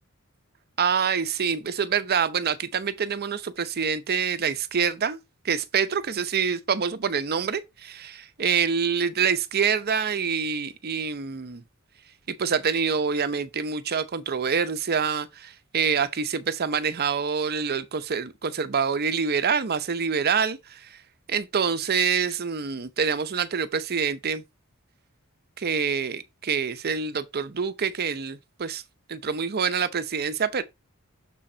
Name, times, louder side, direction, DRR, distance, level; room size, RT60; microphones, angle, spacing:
voice 1, 0.8-5.2 5.4-11.6 12.3-20.8 21.3-24.4 25.6-28.8 29.1-30.6, right 6 dB, 45° right, 0.7 m, -26 dB
6.9 x 3.8 x 4.3 m
head